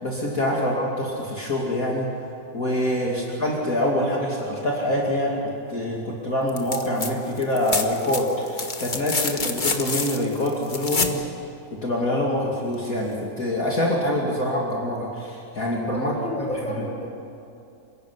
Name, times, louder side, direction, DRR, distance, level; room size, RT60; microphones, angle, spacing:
voice 1, 0.0-2.1 2.5-5.4 5.7-11.3 11.7-16.1, left 1 dB, 50° left, -2 dB, 3.0 m, -25 dB
sound 1, 6.5-7.1 7.4-11.2 12.9-13.0, left 4 dB, 30° left, 1.4 m, -27 dB
voice 2, 15.9-17.2, left 1 dB, 5° left, -1 dB, 5.6 m, -32 dB
27.5 x 16.5 x 9.7 m, 2.7 s
omnidirectional pair, 2.0 m